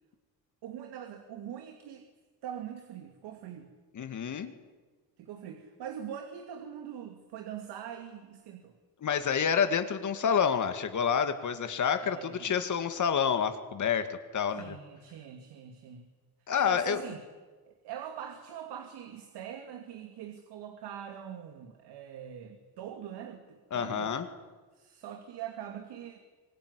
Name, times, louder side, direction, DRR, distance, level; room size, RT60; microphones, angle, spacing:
voice 1, 0.6-2.1 2.4-3.7 5.2-8.7 12.0-12.5 14.5-16.1 16.5-17.2 17.7-24.1 24.7-26.2, right 9 dB, 75° right, 6 dB, 2.6 m, -43 dB
voice 2, 3.9-4.5 9.0-14.8 16.5-17.0 23.7-24.3, left 7 dB, 45° left, 8 dB, 2.3 m, -28 dB
25.0 x 21.5 x 9.9 m, 1.3 s
cardioid pair, 100°, 40 cm